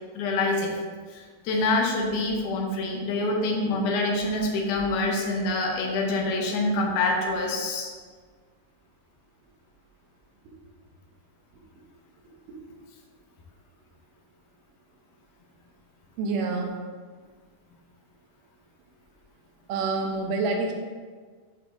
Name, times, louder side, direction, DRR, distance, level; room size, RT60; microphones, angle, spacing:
voice 1, 0.2-0.7 1.1-7.9, left 2 dB, 75° left, 0 dB, 1.9 m, -26 dB
voice 2, 16.2-16.7 19.7-20.7, right 3 dB, 75° right, 1 dB, 2.1 m, -27 dB
9.1 x 4.7 x 2.6 m, 1.6 s
omnidirectional pair, 4.5 m